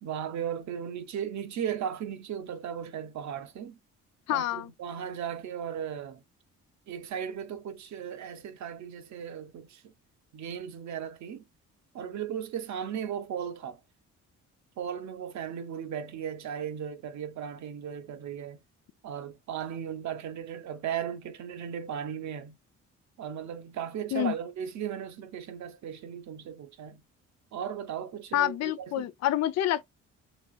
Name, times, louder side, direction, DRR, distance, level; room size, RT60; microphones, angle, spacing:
voice 1, 0.0-3.8 4.3-6.2 6.9-9.9 10.3-11.4 11.9-13.8 14.8-18.6 19.0-22.6 23.2-27.0 27.5-29.1, right 8 dB, 65° right, 0.8 m, -36 dB
voice 2, 4.3-4.7 24.1-24.3 28.3-29.8, left 12 dB, 60° left, 0.4 m, -27 dB
2.9 x 2.9 x 2.3 m
cardioid pair, 90°, 30 cm